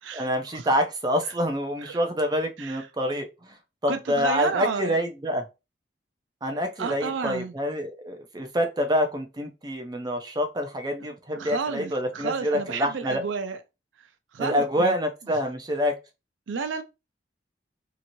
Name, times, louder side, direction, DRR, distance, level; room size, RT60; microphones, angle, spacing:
voice 1, 0.1-3.6 3.8-5.5 6.4-13.2 14.4-16.0, equal, 20° right, 0.4 m, -27 dB
voice 2, 3.9-5.0 6.8-7.5 11.0-11.1 11.3-13.6 14.3-15.0 16.5-16.8, right 5 dB, 90° right, 0.4 m, -31 dB
2.9 x 2.7 x 2.6 m
head